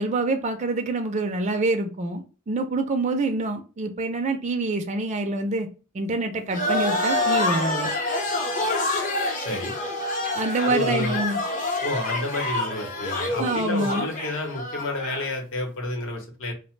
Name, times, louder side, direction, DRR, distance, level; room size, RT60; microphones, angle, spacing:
voice 1, 0.0-5.7 5.9-7.9 10.4-11.4 13.4-14.1, right 2 dB, 35° right, 5 dB, 0.4 m, -26 dB
sound 1, 6.5-15.3, left 2 dB, 40° left, 0.7 m, -27 dB
voice 2, 9.4-9.7 10.6-11.2 11.8-16.5, left 2 dB, 65° left, 2 dB, 0.8 m, -30 dB
2.8 x 2.0 x 3.1 m, 0.34 s
head